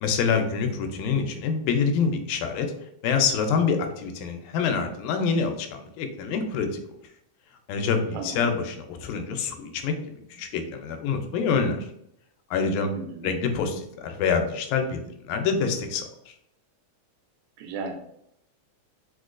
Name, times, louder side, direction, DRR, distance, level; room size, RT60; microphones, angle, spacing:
voice 1, 0.0-2.7 3.0-6.8 7.7-9.9 10.3-11.9 12.5-12.9 13.2-16.3, left 5 dB, 90° left, 5 dB, 2.0 m, -26 dB
voice 2, 8.1-8.5 12.9-13.3 17.6-18.1, right 4 dB, 90° right, 3 dB, 2.0 m, -35 dB
4.6 x 2.2 x 2.4 m, 0.76 s
omnidirectional pair, 3.3 m